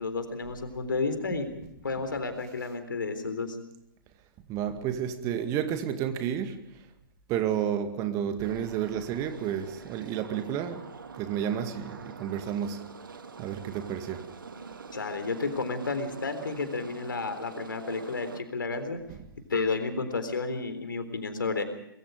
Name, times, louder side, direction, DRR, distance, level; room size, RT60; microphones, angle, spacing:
voice 1, 0.0-1.5 1.8-3.6 14.9-19.0 19.5-21.6, left 4 dB, 70° left, 3.8 m, -31 dB
voice 2, 4.5-6.9 7.3-10.9 11.1-12.9 13.4-14.3 19.1-19.2, right 9 dB, 25° right, 2.1 m, -31 dB
sound 1, 8.4-18.4, right 5 dB, 65° right, 2.1 m, -45 dB
24.0 x 22.0 x 5.0 m
figure-of-eight pair, 115°, 12 cm